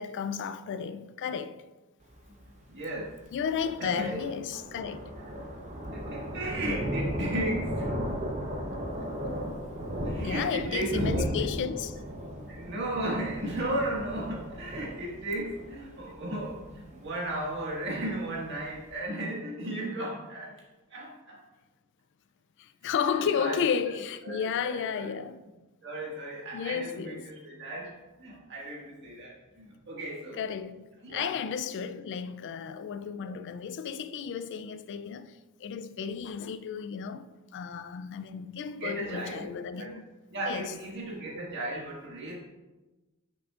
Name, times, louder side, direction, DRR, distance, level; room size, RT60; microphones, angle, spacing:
voice 1, 0.0-1.6 3.3-5.0 10.1-12.0 22.6-25.4 26.5-27.3 30.3-40.0 40.5-40.7, left 7 dB, 55° left, 0.3 m, -33 dB
Thunder, 2.0-18.9, equal, 35° right, 0.9 m, -36 dB
voice 2, 2.7-3.1 3.8-4.2 5.9-8.0 10.0-11.7 12.5-20.6 20.9-21.4 23.1-23.9 24.2-25.1 25.8-27.9 28.2-30.4 31.0-31.3 33.2-33.3 38.7-39.9 40.3-42.3, right 1 dB, 55° right, 1.8 m, -35 dB
8.4 x 6.1 x 2.4 m
head